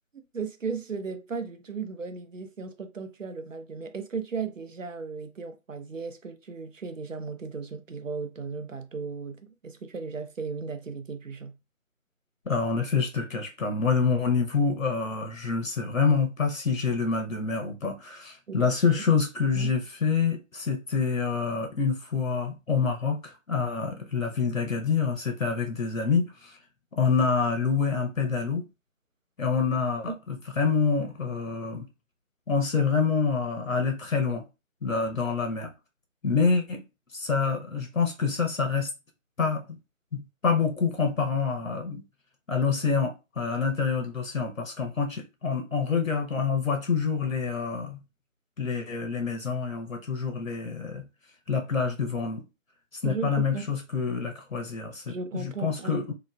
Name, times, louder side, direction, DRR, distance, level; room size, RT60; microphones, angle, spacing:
voice 1, 0.1-11.6 18.5-19.0 19.5-19.7 30.1-30.2 53.0-53.7 55.1-56.0, right 5 dB, 65° right, 0.6 m, -36 dB
voice 2, 12.5-26.6 27.0-28.6 29.4-31.9 32.5-34.4 34.8-35.7 36.2-36.8 37.1-38.9 39.4-39.8 40.1-42.0 42.5-48.0 48.6-51.0 51.5-52.4 53.0-56.1, left 5 dB, 70° left, 0.8 m, -27 dB
2.9 x 2.2 x 2.2 m
figure-of-eight pair, 165°, 41 cm